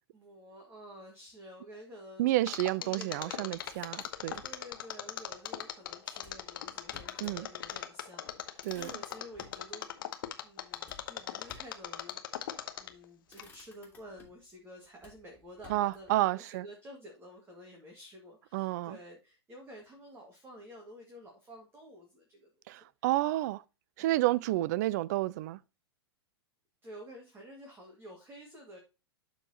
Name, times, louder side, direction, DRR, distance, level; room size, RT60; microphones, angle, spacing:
voice 1, 0.1-2.3 2.8-3.6 4.4-9.9 10.4-22.9 24.0-24.4 26.8-28.8, equal, 15° right, 1.9 m, -51 dB
voice 2, 2.2-4.4 7.2-7.5 8.6-8.9 15.7-16.7 18.5-19.0 22.7-23.6 24.0-25.6, right 17 dB, 40° right, 0.4 m, -30 dB
Mechanisms, 2.5-13.0 13.4-13.5, left 11 dB, 55° left, 1.1 m, -39 dB
Motor vehicle (road), 3.3-4.6 6.2-7.4 7.8-7.9 8.2-9.6 10.9-11.9 12.7-13.0 13.3-14.5 15.0-16.2, left 4 dB, 15° left, 2.8 m, -57 dB
12.0 x 4.4 x 2.8 m
figure-of-eight pair, 100°, 14 cm